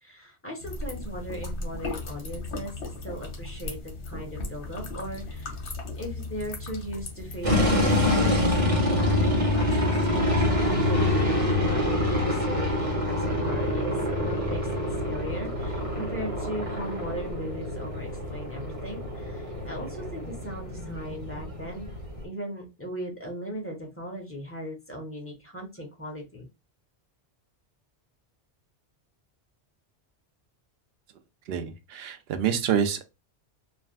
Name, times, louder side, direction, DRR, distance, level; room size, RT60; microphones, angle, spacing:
voice 1, 0.0-5.5 6.0-7.5 8.1-8.5 9.0-9.7 10.1-14.8 15.0-21.9 22.2-26.5, equal, 15° left, 1 dB, 0.7 m, -38 dB
sound 1, 0.6-8.6, left 2 dB, 70° left, 1.1 m, -37 dB
sound 2, 7.4-22.2, left 1 dB, 30° right, 1.0 m, -26 dB
voice 2, 31.5-33.0, right 8 dB, 65° right, 8 dB, 0.7 m, -27 dB
3.3 x 2.4 x 2.4 m, 0.25 s
omnidirectional pair, 1.2 m